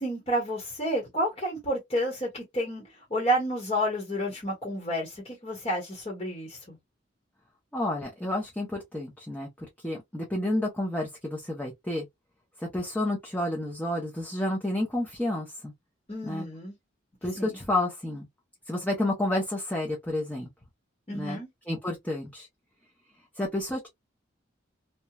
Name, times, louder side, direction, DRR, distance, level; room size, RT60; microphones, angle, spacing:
voice 1, 0.0-6.8 16.1-16.7 17.3-17.6 21.1-21.5, equal, 30° left, 1.0 m, -30 dB
voice 2, 7.7-9.5 9.8-12.1 12.6-15.7 16.2-16.5 17.2-18.3 18.7-20.5 21.1-21.4 21.7-22.5 23.4-23.9, left 1 dB, 10° left, 0.6 m, -30 dB
2.9 x 2.1 x 2.2 m
head